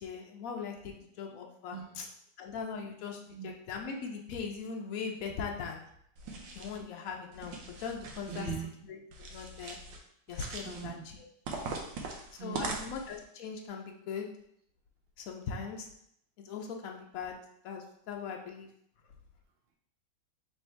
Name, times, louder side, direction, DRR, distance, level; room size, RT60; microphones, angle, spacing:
voice 1, 0.0-2.1 2.4-5.8 6.5-8.5 8.9-9.8 10.3-11.0 12.4-14.3 15.2-15.9 16.4-17.4 17.6-18.7, left 5 dB, 70° left, 2 dB, 0.8 m, -40 dB
voice 2, 1.7-2.0 3.3-3.5 6.3-6.6 8.3-8.7 10.6-11.1 11.8-12.8, right 8 dB, 65° right, 2 dB, 0.5 m, -43 dB
sound 1, 6.2-6.8 7.3-8.5 9.1-10.0 10.3-10.9 11.5-13.2, right 3 dB, 80° right, 1.4 m, -41 dB
3.4 x 3.2 x 4.3 m, 0.71 s
omnidirectional pair, 2.1 m